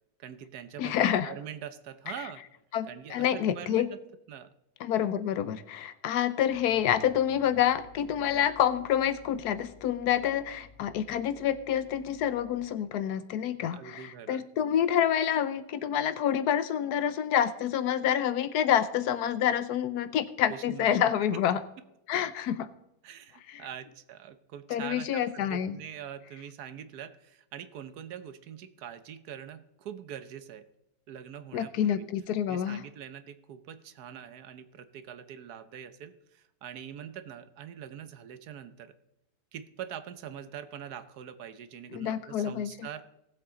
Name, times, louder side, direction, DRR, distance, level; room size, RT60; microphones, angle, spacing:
voice 1, 0.2-2.4 2.9-4.0 4.3-4.5 13.7-14.5 20.5-21.1 23.0-30.7 31.1-32.1 32.5-39.0 39.5-43.0, right 9 dB, 70° right, 12 dB, 1.3 m, -43 dB
voice 2, 0.8-1.3 2.7-3.9 4.8-21.6 22.1-22.7 23.5-23.6 24.7-25.8 31.5-32.8 41.9-42.7, left 10 dB, 75° left, 14 dB, 1.2 m, -28 dB
sound 1, 6.3-12.6, left 2 dB, 45° left, 1.6 m, -55 dB
18.0 x 7.7 x 3.7 m, 0.86 s
omnidirectional pair, 1.8 m